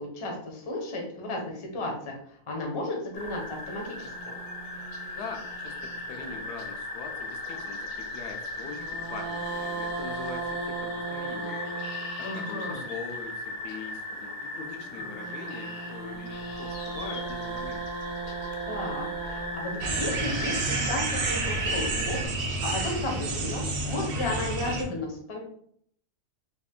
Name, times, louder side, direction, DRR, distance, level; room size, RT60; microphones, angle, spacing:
voice 1, 0.0-4.1 12.2-12.8 18.6-25.4, left 1 dB, 35° left, 0 dB, 0.5 m, -34 dB
sound 1, 3.1-22.2, left 1 dB, 60° left, 0.8 m, -37 dB
sound 2, 4.0-6.4 8.6-12.8 14.9-21.1, right 4 dB, 65° right, 0.8 m, -38 dB
voice 2, 5.2-11.6 12.2-17.9, left 5 dB, 85° left, 3 dB, 1.2 m, -42 dB
sound 3, 19.8-24.8, right 3 dB, 90° right, 0.5 m, -30 dB
3.4 x 2.4 x 3.6 m, 0.66 s
omnidirectional pair, 1.7 m